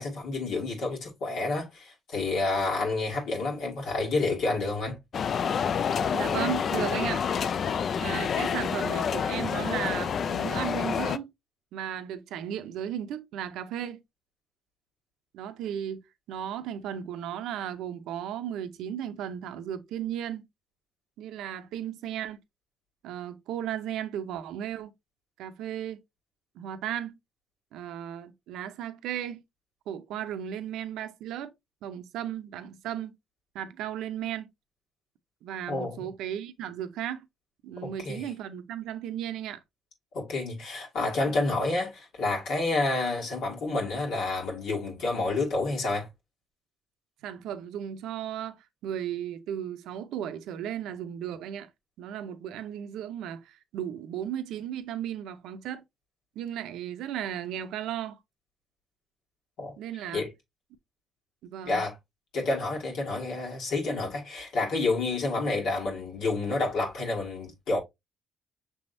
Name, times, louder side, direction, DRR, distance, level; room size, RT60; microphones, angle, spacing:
voice 1, 0.0-5.0 35.7-36.1 37.8-38.3 40.1-46.1 59.6-59.7 60.1-60.3 61.6-62.0 62.3-67.8, left 3 dB, 80° left, 1.8 m, -29 dB
sound 1, 5.1-11.2, left 7 dB, 55° left, 0.3 m, -28 dB
voice 2, 6.1-7.3 8.0-11.3 11.7-14.0 15.3-16.0 16.3-20.4 21.2-22.4 23.0-24.9 25.4-26.0 26.6-27.2 27.7-29.4 29.9-31.5 31.8-33.1 33.5-34.5 35.4-37.3 37.6-39.6 47.2-51.7 52.0-55.8 56.4-58.2 59.8-60.2 61.5-61.8, right 10 dB, 90° right, 0.6 m, -35 dB
6.0 x 3.5 x 2.6 m
cardioid pair, 90°, 0 cm